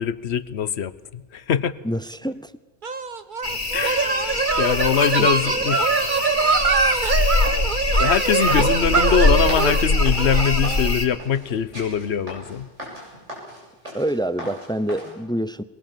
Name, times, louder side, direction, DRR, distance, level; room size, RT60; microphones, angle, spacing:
voice 1, 0.0-1.8 3.7-5.9 8.0-12.7, left 8 dB, 65° left, 16 dB, 1.1 m, -23 dB
voice 2, 1.8-2.5 5.2-5.3 13.9-15.6, right 1 dB, 5° left, 15 dB, 0.5 m, -26 dB
sound 1, 2.8-10.9, right 4 dB, 45° right, 1.2 m, -23 dB
sound 2, 3.4-11.1, left 3 dB, 85° left, 2.9 m, -23 dB
sound 3, 7.0-15.1, equal, 80° right, 8.4 m, -38 dB
23.0 x 22.5 x 7.5 m, 1.2 s
omnidirectional pair, 1.2 m